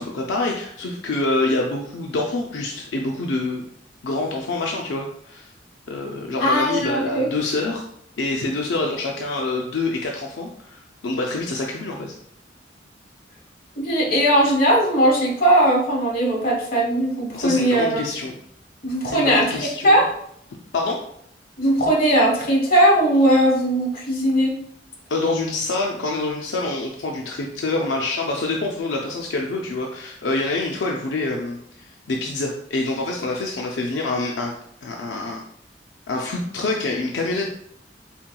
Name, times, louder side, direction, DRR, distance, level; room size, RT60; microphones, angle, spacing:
voice 1, 0.0-3.7 4.0-5.5 5.9-7.9 8.2-12.1 17.3-18.4 19.1-20.0 20.7-21.0 25.1-34.5 34.8-35.4 36.1-37.5, left 2 dB, 85° left, 0 dB, 0.5 m, -26 dB
voice 2, 6.4-7.3 13.8-17.9 18.8-20.1 21.6-24.5, right 1 dB, 55° left, -2 dB, 1.3 m, -19 dB
4.4 x 3.6 x 2.2 m, 0.69 s
head